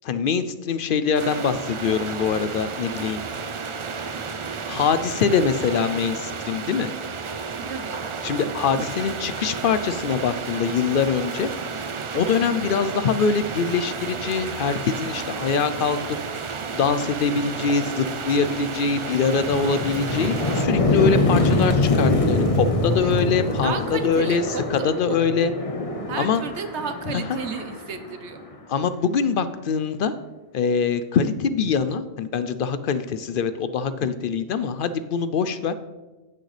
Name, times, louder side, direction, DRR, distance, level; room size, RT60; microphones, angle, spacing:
voice 1, 0.0-3.2 4.7-6.9 8.2-11.5 12.1-16.0 16.4-24.4 24.7-25.5 26.2-26.4 27.1-27.4 28.7-30.1 30.5-35.7, left 6 dB, 60° left, 12 dB, 0.6 m, -23 dB
sound 1, 1.1-20.7, right 5 dB, 40° right, 0.4 m, -32 dB
voice 2, 7.7-9.0 12.4-12.7 22.9-23.1 23.6-25.2 26.1-28.4, right 5 dB, 80° right, 8 dB, 1.2 m, -33 dB
sound 2, 17.4-17.6 18.0-28.8, left 2 dB, 35° left, 1.0 m, -24 dB
15.0 x 6.4 x 3.3 m, 1.2 s
omnidirectional pair, 1.1 m